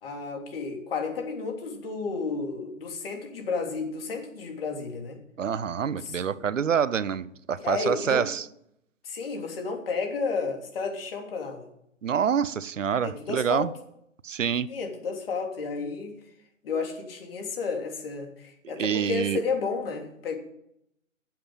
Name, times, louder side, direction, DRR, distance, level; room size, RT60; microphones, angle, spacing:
voice 1, 0.0-5.2 5.9-6.6 7.6-8.2 9.0-11.7 13.0-13.7 14.7-16.1 16.6-20.4, left 4 dB, 45° left, 3.3 m, -32 dB
voice 2, 5.4-8.4 12.0-13.7 14.2-14.7 18.6-19.4, right 7 dB, 70° right, 0.8 m, -26 dB
11.0 x 7.8 x 8.8 m
figure-of-eight pair, 135°, 39 cm